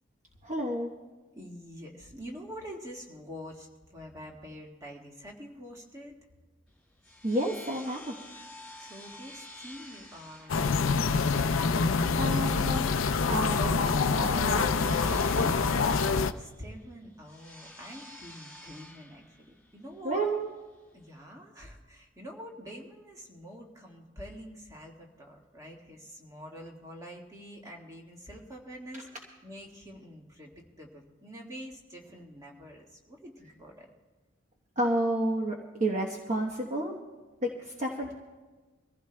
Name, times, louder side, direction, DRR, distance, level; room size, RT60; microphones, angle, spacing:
voice 1, 0.4-0.9 7.2-8.1 12.2-12.9 13.2-15.5 20.0-20.5 34.8-36.9 37.4-38.1, right 1 dB, 40° right, 0 dB, 1.1 m, -31 dB
voice 2, 1.3-6.2 8.8-10.6 16.4-20.3 20.9-33.9, equal, 15° right, -1 dB, 1.8 m, -46 dB
sound 1, 6.7-21.2, left 1 dB, 5° left, 5.0 m, -50 dB
sound 2, 10.5-16.3, left 4 dB, 85° left, 0.5 m, -26 dB
24.5 x 15.5 x 2.3 m, 1.3 s
head